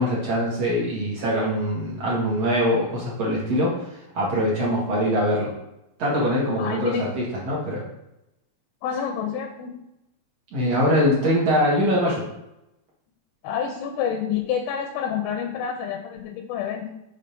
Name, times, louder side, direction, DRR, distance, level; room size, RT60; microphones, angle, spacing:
voice 1, 0.0-5.5 6.0-7.8 10.5-12.2, equal, 50° right, -6 dB, 2.3 m, -23 dB
voice 2, 6.6-7.1 8.8-9.8 13.4-16.9, left 8 dB, 85° left, 4 dB, 2.5 m, -28 dB
6.7 x 4.0 x 5.2 m, 0.88 s
omnidirectional pair, 4.3 m